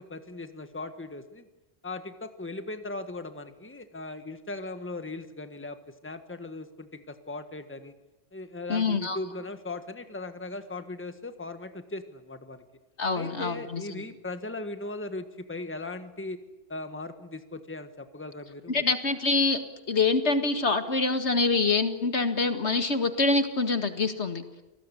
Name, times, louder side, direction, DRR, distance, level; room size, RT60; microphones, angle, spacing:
voice 1, 0.0-1.5 1.8-7.9 8.3-12.6 13.1-16.4 16.7-19.0, left 2 dB, 10° left, 9 dB, 1.5 m, -38 dB
voice 2, 8.7-9.2 13.0-14.0 18.7-19.6 19.9-24.4, left 3 dB, 65° left, 9 dB, 2.2 m, -25 dB
27.5 x 19.5 x 9.9 m, 1.0 s
omnidirectional pair, 1.2 m